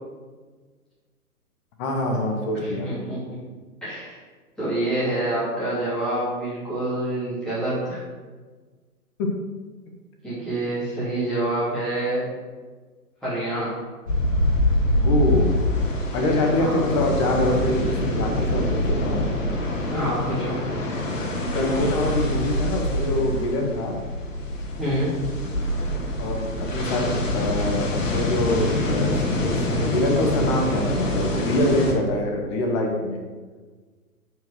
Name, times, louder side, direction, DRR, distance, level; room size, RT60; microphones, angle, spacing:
voice 1, 1.8-2.9 15.0-15.6 16.1-17.8 18.1-19.2 21.5-23.9 26.2-27.1 27.3-33.2, left 1 dB, 20° left, 2 dB, 1.0 m, -24 dB
voice 2, 2.6-3.4 3.8-4.2 4.6-8.0 10.2-12.3 13.2-13.8 16.6-16.8 19.9-20.7 24.8-25.3, right 1 dB, ahead, -12 dB, 2.8 m, -27 dB
sound 1, 14.1-31.9, left 1 dB, 55° left, 1.8 m, -25 dB
9.1 x 5.1 x 6.1 m, 1.4 s
figure-of-eight pair, 125°, 45 cm